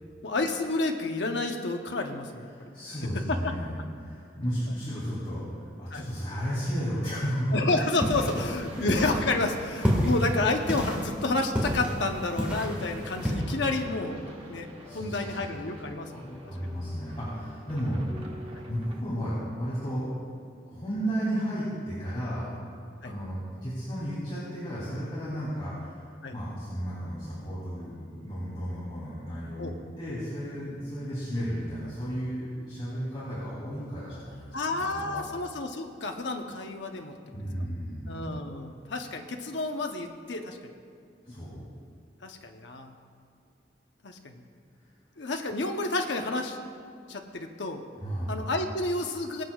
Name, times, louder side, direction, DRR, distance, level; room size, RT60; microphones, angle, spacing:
voice 1, 0.2-2.7 3.1-3.5 5.9-6.0 7.5-14.2 14.5-14.7 14.9-16.4 18.5-18.6 23.0-23.1 26.2-26.3 29.6-29.7 34.5-37.1 38.1-40.7 42.2-42.9 44.0-44.4 45.2-46.6 47.1-47.8 48.3-49.4, left 2 dB, 75° left, 4 dB, 0.8 m, -30 dB
voice 2, 2.5-7.7 8.5-8.8 14.8-15.4 16.1-18.0 18.5-20.0 20.7-22.5 23.0-35.2 37.3-38.1 41.2-41.6 48.0-48.3, equal, 30° left, -10 dB, 3.1 m, -33 dB
sound 1, 7.9-13.3, equal, 10° right, 1.8 m, -30 dB
sound 2, 8.6-19.0, equal, 30° right, 1.2 m, -46 dB
23.0 x 8.0 x 2.4 m, 2.3 s
head